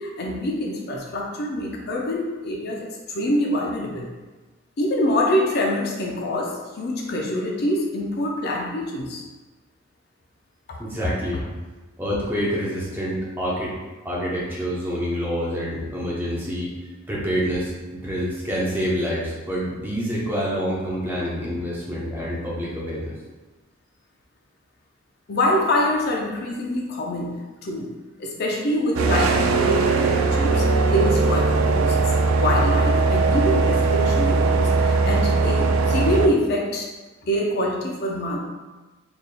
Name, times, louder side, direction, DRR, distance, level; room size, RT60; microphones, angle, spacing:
voice 1, 0.0-4.1 4.8-9.2 10.7-10.8 25.3-27.9 28.2-32.0 32.3-36.9 37.2-38.4, left 1 dB, 50° left, -1 dB, 0.5 m, -25 dB
voice 2, 10.8-11.4 12.0-13.7 14.0-16.7 17.1-23.1, equal, 10° right, -6 dB, 0.8 m, -27 dB
sound 1, 29.0-36.3, right 3 dB, 85° right, 0.3 m, -20 dB
4.1 x 3.3 x 2.2 m, 1.2 s
head